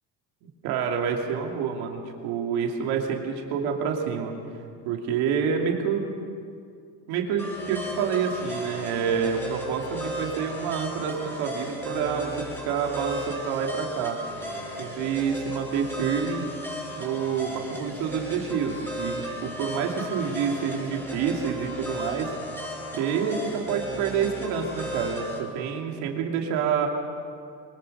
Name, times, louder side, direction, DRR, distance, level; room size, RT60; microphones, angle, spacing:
voice 1, 0.4-4.3 4.8-6.1 7.1-14.2 14.8-16.4 16.9-22.3 22.9-26.9, right 7 dB, 85° right, 1 dB, 2.8 m, -28 dB
sound 1, 7.4-25.4, equal, 5° left, 7.5 m, -35 dB
23.5 x 21.5 x 5.5 m, 2.4 s
cardioid pair, 100°, 37 cm